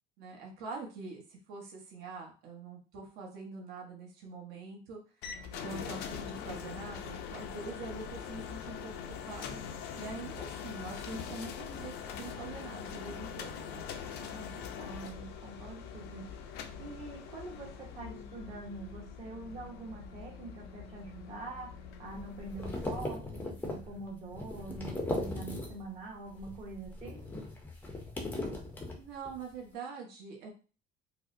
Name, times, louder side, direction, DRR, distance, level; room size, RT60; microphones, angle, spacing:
voice 1, 0.2-5.0 5.5-8.9 9.2-9.6 9.9-13.9 29.0-30.5, right 4 dB, 65° right, 0 dB, 1.1 m, -44 dB
sound 1, 5.2-23.1, left 7 dB, 65° left, 0.5 m, -43 dB
voice 2, 14.2-16.4 16.8-21.7 22.0-27.2, right 3 dB, 35° right, -3 dB, 0.8 m, -45 dB
sound 2, 22.1-26.0 26.3-29.4, left 2 dB, 10° left, 0.6 m, -38 dB
4.7 x 2.1 x 2.6 m, 0.36 s
cardioid pair, 175°, 18 cm